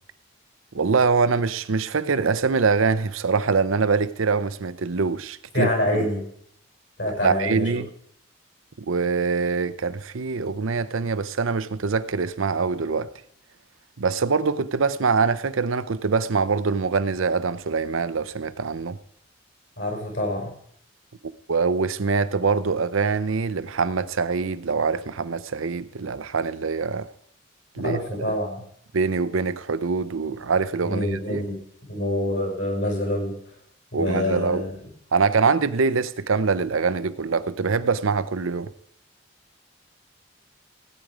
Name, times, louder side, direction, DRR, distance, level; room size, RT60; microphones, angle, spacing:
voice 1, 0.7-6.1 7.2-7.9 8.9-13.1 14.0-19.0 21.2-27.1 27.8-28.0 28.9-31.4 33.9-34.6 35.1-38.7, right 4 dB, 90° right, 0.7 m, -24 dB
voice 2, 5.5-6.2 7.0-7.8 19.8-20.5 27.8-28.6 30.8-31.6 31.9-33.3 33.9-34.9, left 1 dB, 65° left, 5.9 m, -26 dB
17.0 x 9.4 x 5.0 m
head